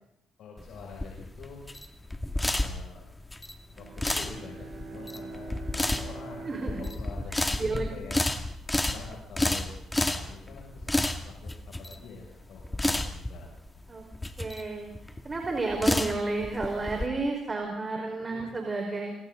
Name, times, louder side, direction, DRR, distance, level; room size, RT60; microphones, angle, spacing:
voice 1, 0.4-1.6 2.3-3.0 3.8-8.2 8.7-9.8 10.1-10.9 11.2-13.5 18.3-18.5, left 5 dB, 75° left, -2 dB, 6.6 m, -46 dB
sound 1, 0.6-17.1, left 1 dB, 15° left, 2.2 m, -31 dB
Bowed string instrument, 3.6-8.5, right 3 dB, 50° right, 6.3 m, -44 dB
voice 2, 6.4-6.9 7.6-7.9 13.9-14.0 14.4-14.9 15.2-19.1, right 3 dB, 30° right, 3 dB, 4.8 m, -31 dB
28.5 x 25.5 x 4.0 m, 0.78 s
cardioid pair, 90°, 0 cm